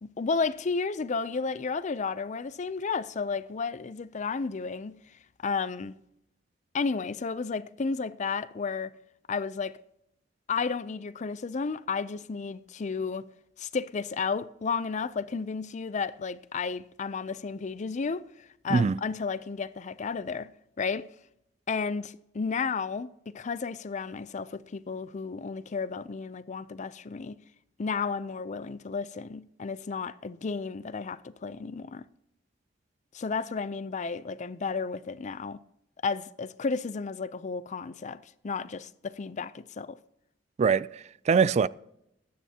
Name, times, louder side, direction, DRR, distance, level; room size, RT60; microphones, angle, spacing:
voice 1, 0.0-4.9 5.4-5.9 6.7-8.9 9.3-9.8 10.5-13.3 13.6-20.5 20.8-21.1 21.7-27.4 27.8-32.1 33.1-35.6 36.0-40.0, left 5 dB, 40° left, 0.5 m, -32 dB
voice 2, 40.6-41.7, right 5 dB, 35° right, 0.3 m, -23 dB
22.0 x 9.4 x 2.8 m
head